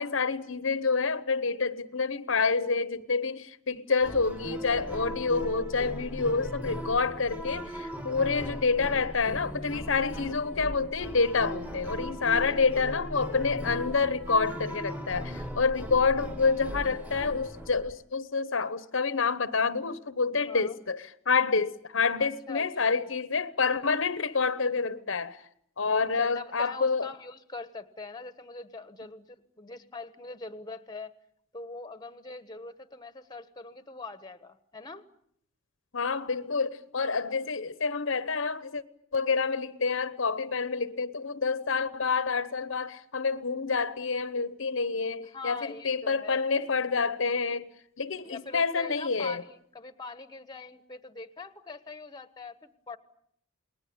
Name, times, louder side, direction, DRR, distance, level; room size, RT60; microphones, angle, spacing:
voice 1, 0.0-25.4 25.8-27.1 35.9-38.8 39.1-47.7 48.0-49.4, left 4 dB, 65° left, 1.0 m, -28 dB
sound 1, 4.0-17.9, equal, 5° right, 1.9 m, -38 dB
voice 2, 20.5-20.8 22.2-22.7 26.2-31.1 31.5-35.0 45.3-46.4 48.2-53.0, left 3 dB, 20° left, 1.2 m, -43 dB
29.0 x 20.5 x 8.7 m
head